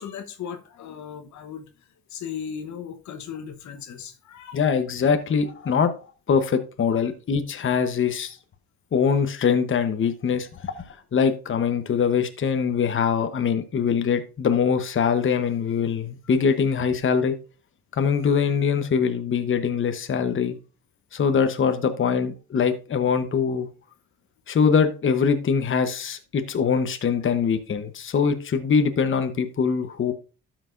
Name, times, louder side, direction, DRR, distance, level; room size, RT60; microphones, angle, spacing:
voice 1, 0.0-1.7 2.1-4.6 6.9-7.0, left 7 dB, 70° left, 1.1 m, -37 dB
voice 2, 4.5-5.9 6.3-8.4 8.9-10.7 11.1-17.4 17.9-20.6 21.1-23.7 24.5-30.1, left 6 dB, 40° left, 1.0 m, -23 dB
12.5 x 6.0 x 2.5 m
cardioid pair, 90°, 30 cm